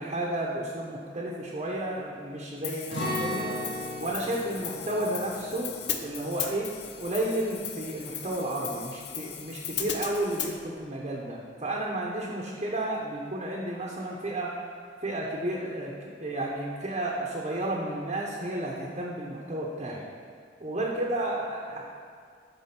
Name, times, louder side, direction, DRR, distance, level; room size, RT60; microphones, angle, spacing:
voice 1, 0.0-3.5 4.0-5.7 6.0-6.7 7.0-14.5 15.0-15.9 16.2-20.0 20.6-21.8, right 1 dB, 35° right, -3 dB, 0.9 m, -32 dB
Hi-hat, 2.6-10.5, left 9 dB, 70° left, 0.6 m, -37 dB
Acoustic guitar, 2.9-8.8 9.1-9.3 9.8-10.2, left 1 dB, 85° left, 1.5 m, -38 dB
7.7 x 4.8 x 5.8 m, 2.3 s
head